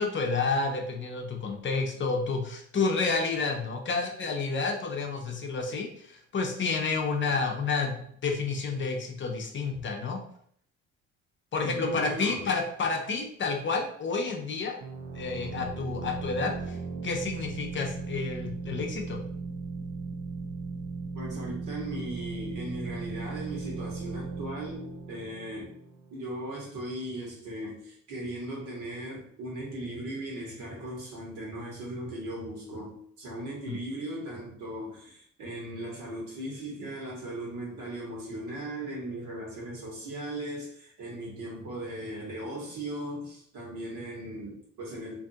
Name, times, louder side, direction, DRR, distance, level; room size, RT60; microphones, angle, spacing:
voice 1, 0.0-10.2 11.5-14.8 15.1-16.8 17.0-19.2 33.7-33.8, left 4 dB, 40° left, 2 dB, 0.5 m, -30 dB
voice 2, 11.6-12.4 21.1-25.7 26.1-45.1, right 1 dB, 75° right, -2 dB, 1.3 m, -38 dB
sound 1, 14.8-26.3, right 4 dB, 50° right, 0.4 m, -37 dB
2.6 x 2.4 x 2.7 m, 0.63 s
cardioid pair, 90°, 31 cm